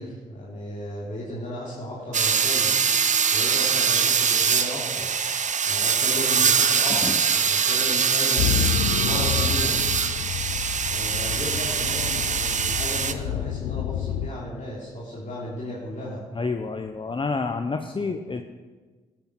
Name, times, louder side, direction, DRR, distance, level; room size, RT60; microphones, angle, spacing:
voice 1, 0.0-2.8 3.3-5.1 5.6-9.8 10.8-16.2 18.0-18.1, left 1 dB, 50° left, -6 dB, 3.3 m, -35 dB
sound 1, 2.1-13.1, right 6 dB, 45° right, 0.8 m, -23 dB
sound 2, 8.4-14.3, left 11 dB, 80° left, 0.4 m, -29 dB
voice 2, 16.3-18.4, left 4 dB, 30° left, 6 dB, 0.8 m, -28 dB
12.5 x 9.2 x 6.0 m, 1.3 s
hypercardioid pair, 45°, 17 cm